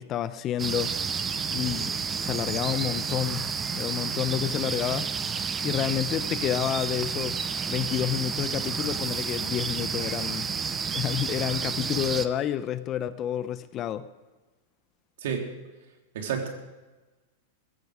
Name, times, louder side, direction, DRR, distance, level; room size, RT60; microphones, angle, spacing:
voice 1, 0.0-5.1 5.6-7.4 7.7-10.5 10.9-14.1, left 11 dB, 35° left, 13 dB, 0.7 m, -30 dB
sound 1, 0.6-12.3, right 6 dB, 20° right, 0.8 m, -30 dB
voice 2, 16.1-16.5, right 7 dB, 70° right, 2 dB, 3.4 m, -29 dB
16.5 x 13.5 x 5.0 m, 1.2 s
hypercardioid pair, 125°, 0 cm